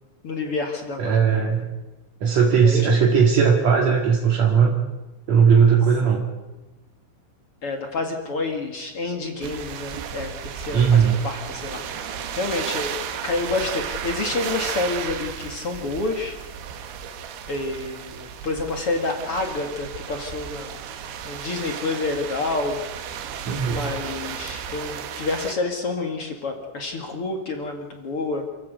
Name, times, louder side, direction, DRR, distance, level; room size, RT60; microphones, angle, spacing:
voice 1, 0.2-1.4 2.6-2.9 7.6-12.9 13.2-16.4 17.5-20.8 21.2-22.8 23.7-28.5, left 3 dB, 50° left, 4 dB, 1.8 m, -28 dB
voice 2, 1.0-1.7 2.2-4.7 5.3-6.2 10.7-11.2 23.5-23.8, right 6 dB, 45° right, -1 dB, 2.5 m, -18 dB
sound 1, 9.4-25.5, right 8 dB, 90° right, 4.2 m, -34 dB
28.0 x 15.0 x 8.2 m, 1.1 s
omnidirectional pair, 5.6 m